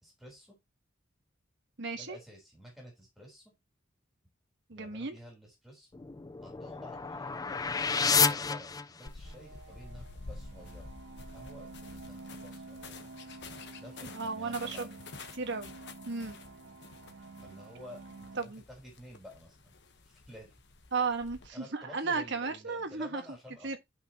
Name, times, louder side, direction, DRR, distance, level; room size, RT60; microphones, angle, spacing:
voice 1, 0.0-0.6 1.9-3.5 4.7-5.9 6.4-7.6 8.1-10.9 11.2-13.0 13.8-15.0 17.4-19.7 20.1-20.5 21.5-23.8, left 1 dB, ahead, 3.7 m, -51 dB
voice 2, 1.8-2.2 4.7-5.1 14.0-14.9 15.3-15.7 16.0-16.4 18.4-18.6 20.9-23.2 23.6-23.8, right 4 dB, 60° right, 1.5 m, -34 dB
sound 1, 5.9-9.3, left 6 dB, 20° left, 0.3 m, -30 dB
sound 2, 9.0-21.5, left 3 dB, 55° left, 1.1 m, -50 dB
sound 3, 9.2-18.4, right 3 dB, 90° right, 1.8 m, -49 dB
11.5 x 5.6 x 2.9 m
head